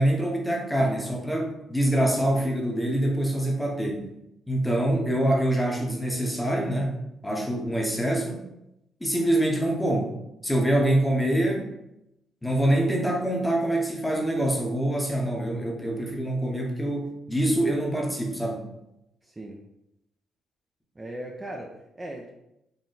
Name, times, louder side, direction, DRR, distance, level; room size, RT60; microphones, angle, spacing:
voice 1, 0.0-4.1 4.5-7.0 7.2-8.4 9.0-10.1 10.4-11.7 12.4-18.6, right 1 dB, 10° left, 1 dB, 0.8 m, -25 dB
voice 2, 19.2-19.6 21.0-22.3, right 1 dB, 20° right, 0 dB, 0.4 m, -38 dB
4.0 x 2.1 x 3.9 m, 0.86 s
cardioid pair, 90°, 0 cm